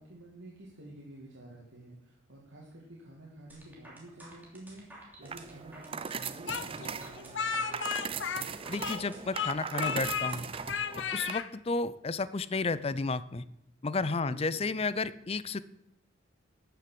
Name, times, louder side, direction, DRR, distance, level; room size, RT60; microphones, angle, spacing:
voice 1, 0.0-7.8 14.2-14.8, right 1 dB, 80° right, -4 dB, 2.5 m, -50 dB
sound 1, 3.5-10.9, right 1 dB, 10° right, 2.9 m, -52 dB
sound 2, 5.2-11.3, right 6 dB, 25° right, 0.4 m, -39 dB
Speech, 6.5-9.1 9.3-10.3 10.7-11.5, left 6 dB, 65° left, 0.8 m, -34 dB
voice 2, 8.7-10.5 11.1-13.4 13.8-15.6, left 3 dB, 30° left, 16 dB, 0.5 m, -32 dB
12.5 x 7.0 x 7.6 m, 0.84 s
head